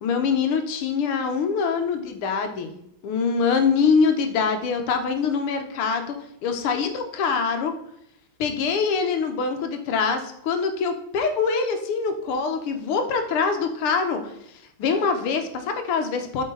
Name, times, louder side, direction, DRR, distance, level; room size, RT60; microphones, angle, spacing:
voice 1, 0.0-2.7 3.0-6.2 6.4-7.7 8.4-14.2 14.8-16.4, left 5 dB, 80° left, 6 dB, 1.9 m, -24 dB
8.1 x 5.0 x 3.8 m, 0.76 s
omnidirectional pair, 2.4 m